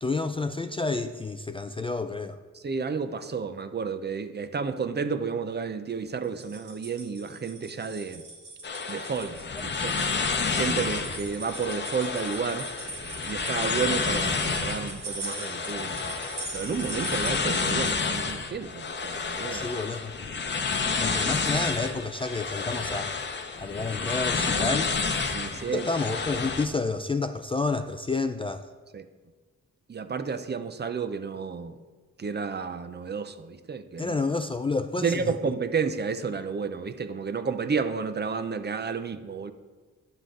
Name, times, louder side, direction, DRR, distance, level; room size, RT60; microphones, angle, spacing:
voice 1, 0.0-2.4 19.5-20.1 21.0-23.1 23.6-24.9 25.7-28.7 34.0-35.3, left 3 dB, 20° left, 0.3 m, -29 dB
voice 2, 2.5-8.2 8.9-9.9 10.5-12.7 13.3-16.1 16.5-19.7 25.3-25.9 28.9-29.1 29.9-31.7 32.2-34.2 35.0-39.5, right 5 dB, 35° right, 0.6 m, -31 dB
sound 1, 6.2-17.9, right 3 dB, 85° right, 2.6 m, -41 dB
sound 2, 8.6-26.7, left 4 dB, 35° left, 0.8 m, -30 dB
9.7 x 7.2 x 3.8 m
cardioid pair, 80°, 30 cm